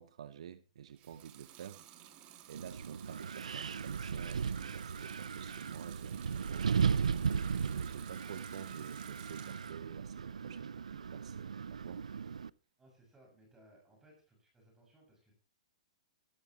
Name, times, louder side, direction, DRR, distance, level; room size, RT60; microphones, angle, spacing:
voice 1, 0.0-1.8 2.5-6.7 7.6-12.0, right 9 dB, 65° right, 0.9 m, -49 dB
Water tap faucet / Sink (filling or washing) / Liquid, 0.9-9.8 10.2-11.0, right 12 dB, 35° right, 2.3 m, -56 dB
Wind, 2.5-12.5, right 6 dB, 90° right, 0.5 m, -36 dB
voice 2, 12.8-15.3, right 1 dB, 10° right, 6.5 m, -63 dB
15.5 x 14.0 x 3.0 m
hypercardioid pair, 135°, 4 cm